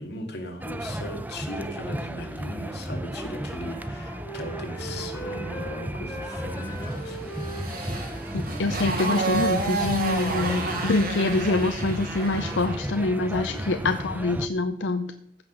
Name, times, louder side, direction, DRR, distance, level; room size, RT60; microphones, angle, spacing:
voice 1, 0.0-7.3 13.5-14.0, left 1 dB, 60° left, 3 dB, 2.4 m, -38 dB
sound 1, 0.6-14.5, right 1 dB, 10° right, 0.5 m, -34 dB
Wind instrument woodwind instrument, 2.7-9.5, right 1 dB, 15° left, 3.8 m, -40 dB
Motorcycle, 6.8-12.9, right 3 dB, 55° right, 2.9 m, -30 dB
voice 2, 8.3-15.1, left 2 dB, 85° left, 8 dB, 0.6 m, -25 dB
15.5 x 6.2 x 6.4 m, 0.75 s
head